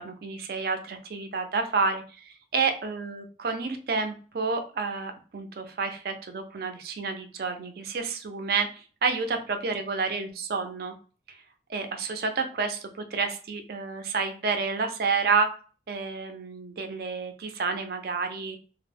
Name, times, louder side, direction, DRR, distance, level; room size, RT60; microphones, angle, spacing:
voice 1, 0.0-10.9 11.7-15.5 15.9-18.6, right 4 dB, 55° right, 6 dB, 0.4 m, -29 dB
2.1 x 2.0 x 3.2 m, 0.38 s
head